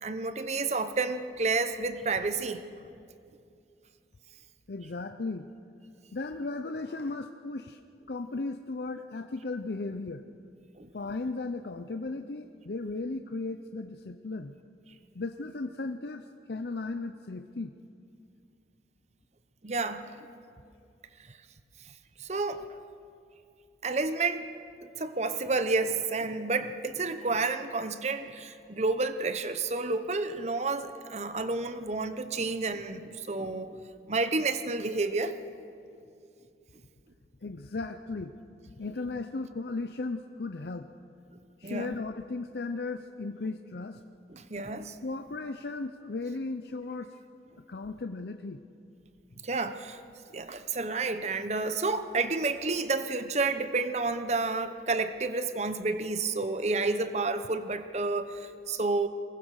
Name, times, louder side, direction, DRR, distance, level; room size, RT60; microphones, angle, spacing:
voice 1, 0.0-2.6 10.8-10.9 19.6-20.1 22.2-22.6 23.8-24.5 24.8-33.8 34.1-35.3 41.6-42.0 44.3-45.0 49.4-50.0 50.3-59.1, right 3 dB, 40° right, 10 dB, 0.9 m, -30 dB
voice 2, 4.7-5.5 6.1-7.8 8.1-10.3 10.9-14.5 15.1-17.7 37.4-38.3 38.8-40.9 41.6-44.0 45.0-47.1 47.7-48.6, left 3 dB, 65° left, 7 dB, 0.6 m, -36 dB
23.0 x 19.0 x 6.5 m, 2.5 s
head